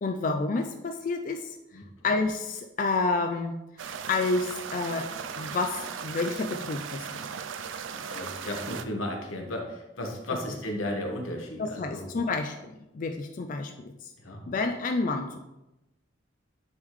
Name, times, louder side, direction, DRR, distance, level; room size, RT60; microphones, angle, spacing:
voice 1, 0.0-1.6 2.0-3.6 4.1-5.1 5.4-7.3 11.6-13.9 14.5-15.4, left 3 dB, 40° left, 4 dB, 0.3 m, -29 dB
sound 1, 3.8-8.8, right 6 dB, 70° right, 0.4 m, -37 dB
voice 2, 8.1-12.1 14.2-14.4, left 1 dB, 85° left, 2 dB, 1.2 m, -34 dB
9.2 x 3.7 x 3.2 m, 0.96 s
head